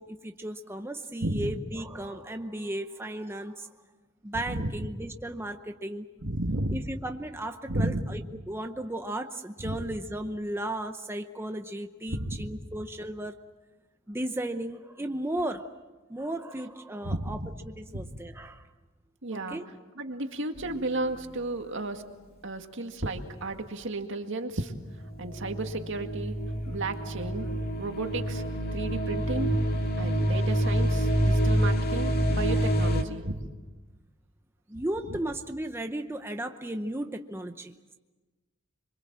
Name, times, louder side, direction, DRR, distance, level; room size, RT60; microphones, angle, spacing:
voice 1, 0.0-3.7 4.2-6.1 6.7-8.2 8.5-13.4 14.1-15.7 16.1-17.4 17.6-18.7 19.3-19.7 34.7-37.7, right 1 dB, 10° right, 6 dB, 0.8 m, -35 dB
voice 2, 1.2-1.5 4.3-4.7 6.2-6.8 7.7-8.0 9.6-9.7 12.1-12.5 17.0-17.5 17.9-18.1 19.2-19.6 20.0-22.0 22.4-24.7 25.2-26.4 26.7-27.5 27.8-28.4 28.7-29.6 30.0-33.4 35.1-35.2, right 2 dB, 65° right, 5 dB, 2.1 m, -33 dB
sound 1, 20.6-21.4 25.0-33.0, equal, 50° left, 2.3 m, -27 dB
26.5 x 23.5 x 7.5 m, 1.2 s
head